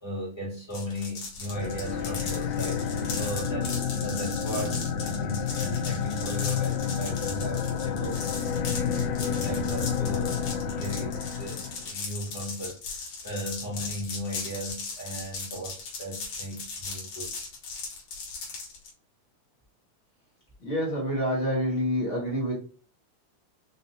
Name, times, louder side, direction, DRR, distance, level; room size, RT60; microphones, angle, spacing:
voice 1, 0.0-17.3, equal, 15° left, -4 dB, 1.1 m, -37 dB
sound 1, 0.7-18.9, left 4 dB, 65° left, 2.3 m, -38 dB
sound 2, 1.5-11.9, left 7 dB, 80° left, 2.1 m, -30 dB
voice 2, 20.6-22.5, equal, 45° left, -4 dB, 0.9 m, -27 dB
5.2 x 2.6 x 2.7 m, 0.37 s
omnidirectional pair, 3.5 m